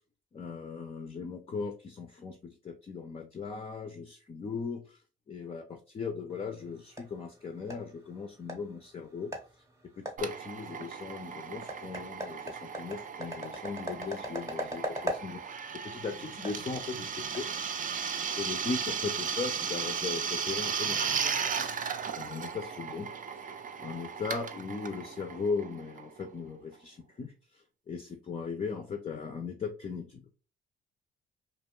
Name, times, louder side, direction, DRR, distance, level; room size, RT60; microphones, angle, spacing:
voice 1, 0.3-5.0 5.3-9.3 10.0-15.5 15.8-17.5 18.4-21.6 22.1-23.1 23.4-30.3, left 5 dB, 30° left, 4 dB, 0.4 m, -38 dB
sound 1, 6.3-18.1, equal, 15° right, 0.7 m, -42 dB
Drill, 10.2-26.5, right 6 dB, 45° right, 0.4 m, -36 dB
2.5 x 2.3 x 2.9 m, 0.33 s
cardioid pair, 90°, 20 cm